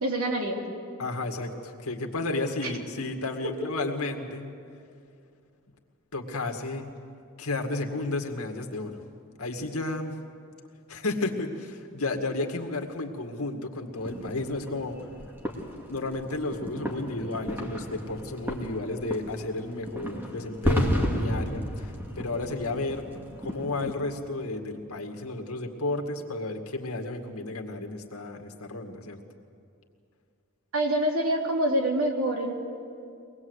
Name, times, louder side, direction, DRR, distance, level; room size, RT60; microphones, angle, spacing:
voice 1, 0.0-0.6 3.4-3.5 30.7-32.5, right 1 dB, 75° right, 1 dB, 3.1 m, -26 dB
voice 2, 1.0-4.5 6.1-6.9 7.4-9.0 9.4-10.2 10.9-15.0 15.9-23.1 23.4-29.2, left 2 dB, 85° left, 4 dB, 2.1 m, -32 dB
sound 1, 14.0-23.9, equal, 10° right, 2.2 m, -33 dB
23.5 x 19.5 x 8.1 m, 2.4 s
head